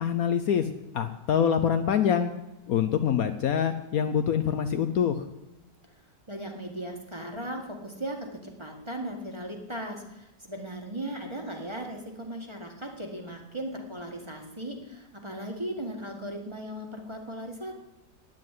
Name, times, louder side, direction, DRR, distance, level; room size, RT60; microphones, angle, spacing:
voice 1, 0.0-0.7 0.9-2.3 2.7-5.2, left 8 dB, 65° left, 9 dB, 1.1 m, -25 dB
voice 2, 6.3-17.7, right 1 dB, 15° right, 2 dB, 1.8 m, -37 dB
9.8 x 9.2 x 9.2 m, 0.95 s
omnidirectional pair, 1.8 m